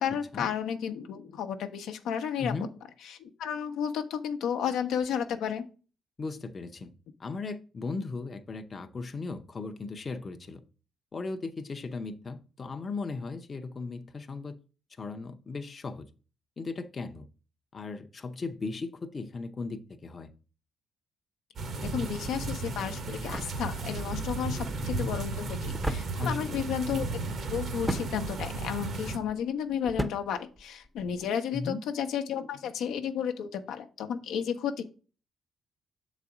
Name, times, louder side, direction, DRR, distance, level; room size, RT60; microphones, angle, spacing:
voice 1, 0.0-2.5 3.2-5.7 21.8-27.1 27.5-34.8, left 8 dB, 80° left, 0.7 m, -32 dB
voice 2, 6.2-6.9 7.2-10.6 11.1-14.6 15.0-16.1 16.6-17.3 17.7-20.3 26.2-26.7 31.5-31.8, left 3 dB, 35° left, 0.7 m, -37 dB
sound 1, 21.6-29.2, right 3 dB, 55° right, 1.1 m, -34 dB
sound 2, 23.2-31.3, right 1 dB, 10° right, 0.7 m, -39 dB
6.8 x 4.1 x 4.8 m
cardioid pair, 90°, 0 cm